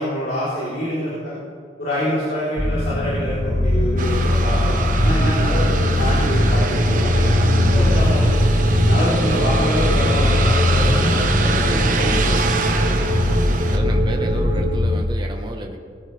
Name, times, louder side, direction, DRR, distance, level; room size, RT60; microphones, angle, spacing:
voice 1, 0.0-1.4 1.8-8.4 8.9-12.2, left 1 dB, 60° left, -10 dB, 3.8 m, -25 dB
sound 1, 2.6-15.0, left 1 dB, 20° left, 0.7 m, -20 dB
sound 2, 4.0-13.8, right 3 dB, 45° right, 1.1 m, -25 dB
sound 3, 5.0-14.8, right 1 dB, 65° right, 1.4 m, -23 dB
voice 2, 12.9-13.3 13.7-15.8, right 1 dB, 25° right, 2 dB, 1.2 m, -31 dB
19.0 x 13.0 x 3.4 m, 2.3 s
head